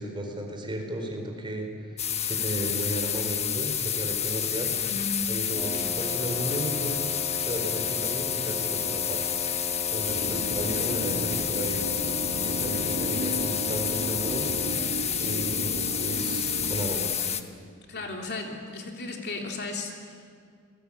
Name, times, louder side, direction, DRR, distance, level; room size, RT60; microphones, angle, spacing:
voice 1, 0.0-4.7 5.3-7.0 7.4-9.3 9.9-12.0 12.4-14.5 15.2-17.3, right 1 dB, 20° right, 2 dB, 4.7 m, -34 dB
sound 1, 2.0-17.4, left 9 dB, 30° left, 1.3 m, -29 dB
voice 2, 4.8-5.3 5.7-5.9 10.1-10.3 17.9-20.2, left 3 dB, 50° left, 2 dB, 3.2 m, -35 dB
Wind instrument woodwind instrument, 5.5-14.9, left 1 dB, 5° left, 3.0 m, -38 dB
sound 2, 10.1-16.9, right 1 dB, 65° right, 1.6 m, -35 dB
28.0 x 21.5 x 8.9 m, 2.1 s
head